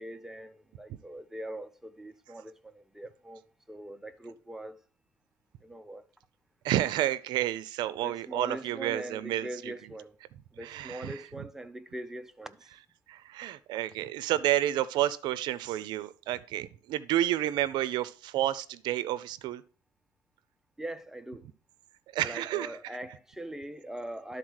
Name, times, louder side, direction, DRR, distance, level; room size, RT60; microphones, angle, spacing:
voice 1, 0.0-2.5 2.9-3.4 3.7-4.8 5.6-6.0 8.0-10.1 10.6-12.6 20.8-21.5 22.2-24.4, right 1 dB, 5° right, 0.7 m, -41 dB
voice 2, 6.6-9.7 10.6-11.2 13.1-19.6 22.1-22.8, right 13 dB, 80° right, 0.5 m, -30 dB
11.5 x 4.0 x 6.4 m
cardioid pair, 120°, 8 cm